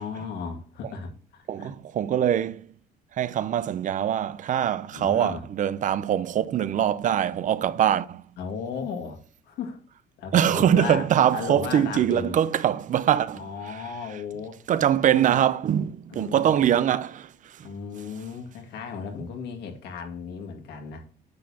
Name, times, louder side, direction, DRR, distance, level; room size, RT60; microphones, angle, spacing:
voice 1, 0.0-1.7 4.9-5.4 8.4-9.2 9.5-9.8 10.2-11.1 11.3-12.3 13.3-15.5 16.1-16.7 17.6-21.1, left 5 dB, 75° left, 2.1 m, -35 dB
voice 2, 1.5-2.6 3.2-8.2 10.3-13.8 14.7-17.7, right 10 dB, 50° right, 0.6 m, -23 dB
9.6 x 6.6 x 2.9 m
cardioid pair, 110°, 17 cm